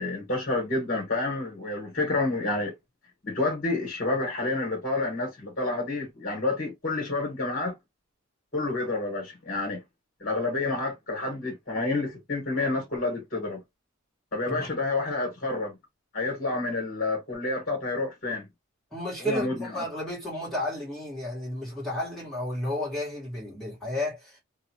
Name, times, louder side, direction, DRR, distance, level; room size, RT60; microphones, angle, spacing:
voice 1, 0.0-2.7 3.2-7.7 8.5-9.8 10.2-13.6 14.3-15.8 16.1-18.5 19.2-19.8, left 2 dB, 45° left, 1.4 m, -29 dB
voice 2, 18.9-24.4, left 1 dB, ahead, 1.5 m, -32 dB
2.7 x 2.4 x 2.8 m
head